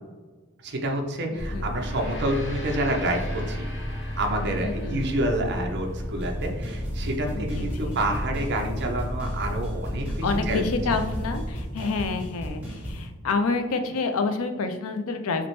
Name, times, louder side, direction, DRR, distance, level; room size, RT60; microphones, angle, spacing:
voice 1, 0.6-3.7 4.2-10.8 11.8-12.0, right 1 dB, 55° right, 3 dB, 0.7 m, -28 dB
voice 2, 1.3-1.7 4.6-5.0 7.3-8.0 10.2-15.5, left 4 dB, 75° left, 7 dB, 0.5 m, -28 dB
sound 1, 1.4-11.5, equal, 15° left, 0.8 m, -32 dB
Gong, 1.5-6.2, left 1 dB, 55° left, 0.9 m, -43 dB
sound 2, 6.2-13.0, equal, 5° right, 1.1 m, -36 dB
5.8 x 2.1 x 3.0 m, 1.3 s
head